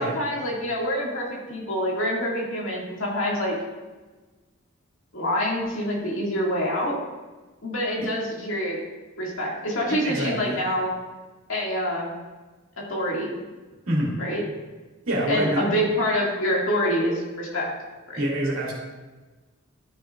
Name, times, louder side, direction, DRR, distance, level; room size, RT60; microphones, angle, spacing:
voice 1, 0.0-3.5 5.1-7.0 7.6-8.8 9.2-10.9 11.5-12.1 12.8-13.3 14.2-14.4 15.3-17.7 18.1-18.2, equal, 70° left, -3 dB, 2.3 m, -26 dB
voice 2, 9.9-10.6 13.9-14.2 15.1-15.6 18.2-18.7, right 1 dB, 75° right, -3 dB, 2.5 m, -26 dB
12.5 x 6.4 x 2.5 m, 1.2 s
head